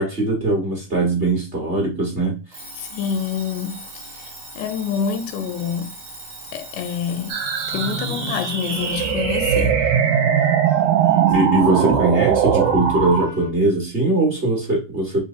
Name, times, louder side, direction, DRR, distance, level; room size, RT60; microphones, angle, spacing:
voice 1, 0.0-2.4 11.3-15.2, right 2 dB, 30° right, 1.1 m, -21 dB
Alarm, 2.5-9.2, right 1 dB, 45° right, 1.9 m, -39 dB
voice 2, 2.8-4.3 4.6-6.0 6.5-7.4 7.7-9.8, left 7 dB, 85° left, 2.0 m, -27 dB
sound 1, 7.3-13.3, right 9 dB, 75° right, 2.0 m, -20 dB
sound 2, 7.7-13.5, left 4 dB, 20° left, 0.6 m, -37 dB
4.8 x 3.1 x 2.8 m
omnidirectional pair, 3.7 m